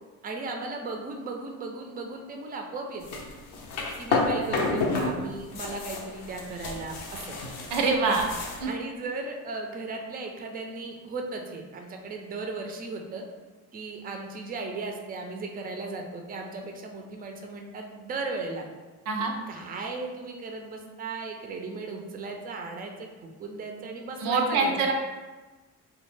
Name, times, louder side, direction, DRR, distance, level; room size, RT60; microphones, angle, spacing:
voice 1, 0.2-3.2 4.0-7.3 8.0-8.1 8.7-13.2 13.7-18.6 19.2-23.1 23.4-24.8, right 3 dB, 25° right, 3 dB, 0.4 m, -36 dB
sound 1, 3.0-5.1 5.4-8.6, left 3 dB, 80° left, 0.6 m, -30 dB
voice 2, 7.7-8.2 8.6-8.7 19.1-19.3 24.2-24.9, right 4 dB, 85° right, 3 dB, 0.5 m, -24 dB
2.2 x 2.1 x 3.1 m, 1.2 s
supercardioid pair, 60°, 39 cm